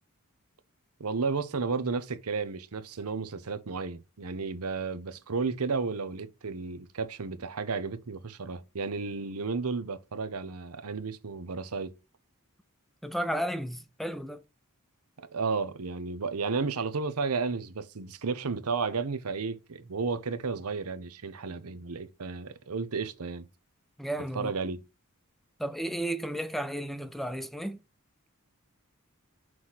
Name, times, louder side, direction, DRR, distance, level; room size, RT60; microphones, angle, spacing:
voice 1, 1.0-11.9 15.2-23.5 24.3-24.8, right 4 dB, 85° right, 0.8 m, -33 dB
voice 2, 13.0-14.4 24.0-24.5 25.6-27.8, right 1 dB, ahead, 0.5 m, -33 dB
6.2 x 3.2 x 5.6 m
head